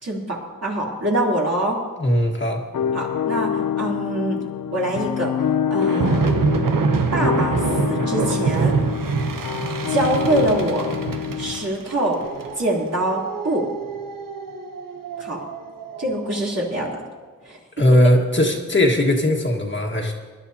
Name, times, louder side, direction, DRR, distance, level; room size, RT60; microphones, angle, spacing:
voice 1, 0.0-1.8 2.9-3.5 3.8-4.4 4.7-5.3 5.7-6.3 7.1-8.7 9.9-10.9 11.4-12.2 12.6-13.6 15.2-15.4 16.0-17.0 17.4-17.6, right 1 dB, 50° right, -4 dB, 3.3 m, -24 dB
voice 2, 2.0-2.6 17.8-20.1, left 1 dB, 35° left, 0 dB, 1.7 m, -18 dB
sound 1, 2.7-11.7, left 8 dB, 80° left, 0.6 m, -26 dB
sound 2, 5.8-16.4, right 5 dB, 85° right, 0.8 m, -25 dB
23.5 x 11.5 x 2.8 m, 1.4 s
wide cardioid pair, 85°, 32 cm